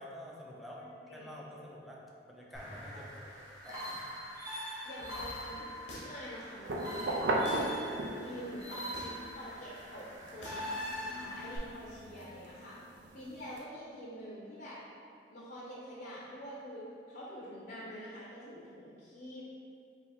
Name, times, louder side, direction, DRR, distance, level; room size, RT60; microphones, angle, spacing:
voice 1, 0.0-0.8 1.1-3.2 3.6-4.0, left 1 dB, ahead, -4 dB, 0.5 m, -48 dB
voice 2, 0.8-1.3 3.7-3.9 4.8-7.2 8.1-12.8 13.1-14.8 15.3-19.4, equal, 55° left, -7 dB, 0.6 m, -46 dB
sound 1, 2.5-11.6, equal, 20° right, 0.9 m, -43 dB
sound 2, 5.9-6.3 7.4-7.7 8.9-9.3 10.4-10.7, left 1 dB, 80° left, 0.9 m, -47 dB
sound 3, 6.6-8.5 9.0-13.6, right 1 dB, 80° right, 0.4 m, -37 dB
3.5 x 2.7 x 4.2 m, 2.4 s
head